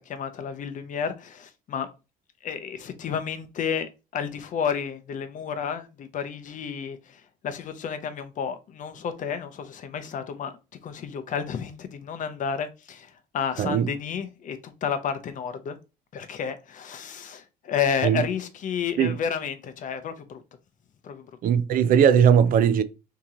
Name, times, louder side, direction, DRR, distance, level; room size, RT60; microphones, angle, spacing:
voice 1, 0.0-1.9 2.4-10.5 10.8-15.8 16.1-20.4 21.0-21.3, left 7 dB, 50° left, 0.6 m, -31 dB
voice 2, 13.6-13.9 18.0-18.2 19.0-19.2 21.4-22.8, right 8 dB, 55° right, 0.4 m, -19 dB
2.9 x 2.8 x 3.6 m
cardioid pair, 110°, 17 cm